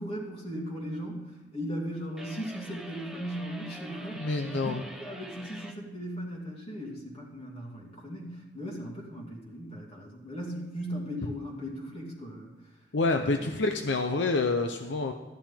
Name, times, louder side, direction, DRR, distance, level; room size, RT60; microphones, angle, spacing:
voice 1, 0.0-12.5 13.1-13.5, equal, 35° left, -2 dB, 2.4 m, -38 dB
sound 1, 2.2-5.8, right 1 dB, 5° right, 0.8 m, -45 dB
voice 2, 4.2-4.8 12.9-15.1, left 3 dB, 80° left, 6 dB, 0.7 m, -27 dB
13.0 x 10.5 x 3.5 m, 1.3 s
head